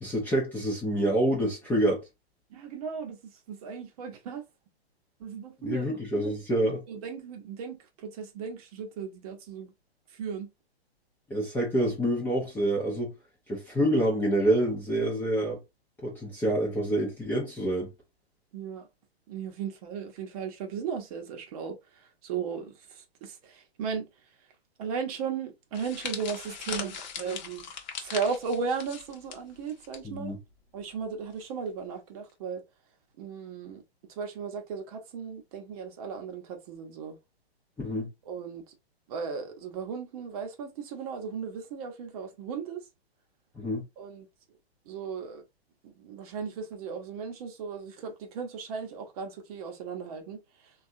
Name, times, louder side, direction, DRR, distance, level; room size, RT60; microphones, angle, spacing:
voice 1, 0.0-2.0 5.6-6.8 11.3-13.1 13.5-15.6 16.0-17.9 30.0-30.4 37.8-38.1 43.6-43.8, right 1 dB, 5° left, 0.5 m, -27 dB
voice 2, 2.5-4.4 5.2-5.9 6.9-9.7 10.1-10.5 18.5-18.9 19.3-24.1 24.8-27.6 28.0-30.3 30.7-32.6 33.2-33.8 34.2-37.2 38.2-38.6 39.1-42.9 44.0-44.3 44.9-45.4 45.8-50.7, right 6 dB, 35° right, 0.8 m, -36 dB
sound 1, 25.7-30.0 30.3-30.5 31.4-31.7, left 7 dB, 45° left, 0.8 m, -40 dB
3.4 x 2.4 x 2.6 m
hypercardioid pair, 125°, 32 cm